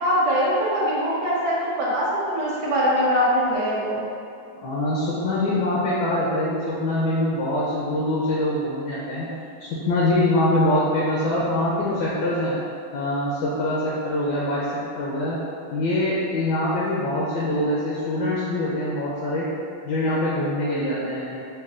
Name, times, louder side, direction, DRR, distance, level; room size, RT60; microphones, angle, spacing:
voice 1, 0.0-4.0, equal, 60° right, -6 dB, 1.1 m, -22 dB
voice 2, 4.6-9.3 9.6-12.6 12.9-15.4 15.7-19.5 19.8-21.4, left 1 dB, 75° left, -7 dB, 1.1 m, -24 dB
5.3 x 2.2 x 2.4 m, 2.4 s
omnidirectional pair, 2.2 m